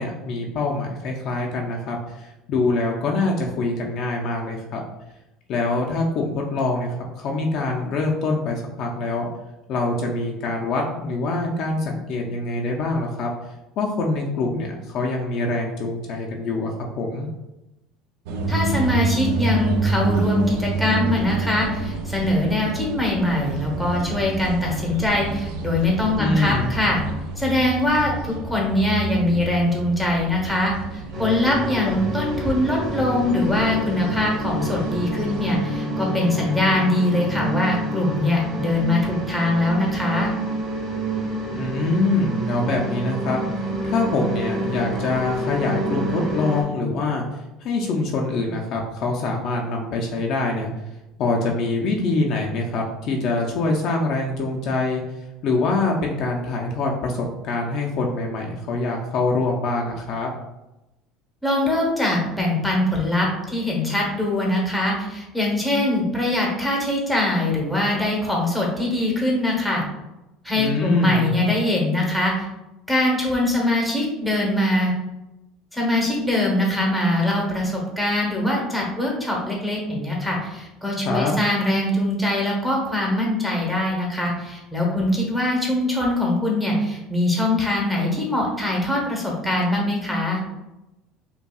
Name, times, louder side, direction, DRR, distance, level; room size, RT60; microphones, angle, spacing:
voice 1, 0.0-4.8 5.5-9.3 9.7-13.3 13.8-17.3 26.2-26.7 31.8-31.9 41.5-43.4 43.8-47.3 47.6-50.7 51.2-55.0 55.4-60.3 70.6-71.4 81.0-81.4, left 3 dB, 50° left, 0 dB, 0.5 m, -24 dB
sound 1, 18.3-35.6, right 3 dB, 75° right, 0.4 m, -29 dB
voice 2, 18.5-27.0 27.4-40.3 61.4-69.8 70.4-72.5 72.9-74.9 75.7-90.4, left 1 dB, ahead, -2 dB, 0.9 m, -22 dB
sound 2, 31.1-46.6, right 1 dB, 30° right, 1.5 m, -28 dB
5.3 x 2.3 x 2.3 m, 0.97 s
cardioid pair, 150°, 0 cm